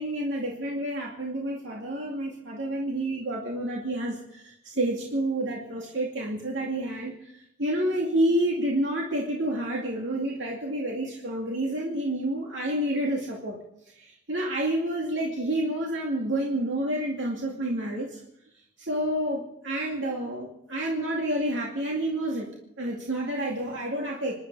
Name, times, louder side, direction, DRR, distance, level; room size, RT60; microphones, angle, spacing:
voice 1, 0.0-7.3 7.6-13.6 14.0-18.2 18.8-22.5 22.8-24.3, right 1 dB, 75° right, -2 dB, 2.4 m, -29 dB
26.5 x 11.5 x 4.8 m, 0.78 s
head